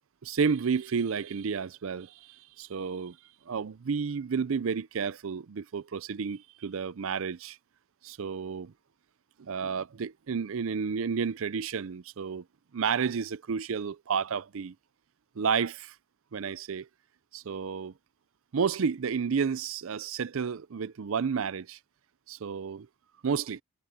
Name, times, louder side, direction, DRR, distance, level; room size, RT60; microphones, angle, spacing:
voice 1, 0.2-3.2 3.5-7.6 8.0-8.7 9.4-12.4 12.7-14.7 15.4-15.9 16.3-16.9 17.3-17.9 18.5-21.8 22.3-22.9 23.2-23.6, right 6 dB, 70° right, 0.5 m, -31 dB
head